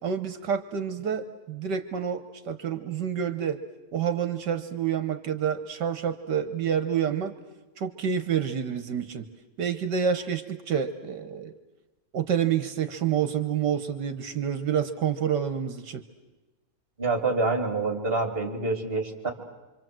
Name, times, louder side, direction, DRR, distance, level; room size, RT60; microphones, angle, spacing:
voice 1, 0.0-3.6 3.9-7.3 7.8-9.3 9.6-11.5 12.1-16.0, right 8 dB, 70° right, 10 dB, 1.7 m, -28 dB
voice 2, 17.0-19.3, right 3 dB, 30° right, 4 dB, 3.2 m, -27 dB
26.5 x 26.0 x 7.7 m, 1.1 s
omnidirectional pair, 2.0 m